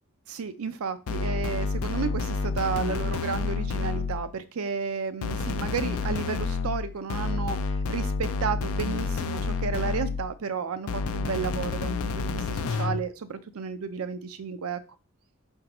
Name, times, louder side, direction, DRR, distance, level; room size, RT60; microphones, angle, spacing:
voice 1, 0.3-14.8, right 5 dB, 80° right, 11 dB, 0.5 m, -32 dB
sound 1, 1.1-4.3 5.2-10.4 10.9-13.1, left 4 dB, 85° left, 0.4 m, -29 dB
4.7 x 3.7 x 3.0 m, 0.32 s
head